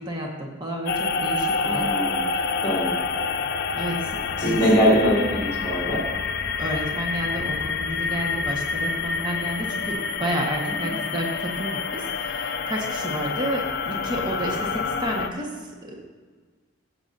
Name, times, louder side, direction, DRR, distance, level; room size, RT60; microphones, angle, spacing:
voice 1, 0.0-1.9 2.3-2.5 3.7-4.7 6.6-16.0, right 1 dB, 20° right, -1 dB, 1.3 m, -31 dB
sound 1, 0.9-15.3, left 5 dB, 50° left, 0.5 m, -28 dB
voice 2, 1.6-2.2 2.6-2.9 4.4-6.0 10.8-10.9, equal, 15° left, -4 dB, 2.6 m, -22 dB
14.0 x 8.1 x 2.6 m, 1.4 s
head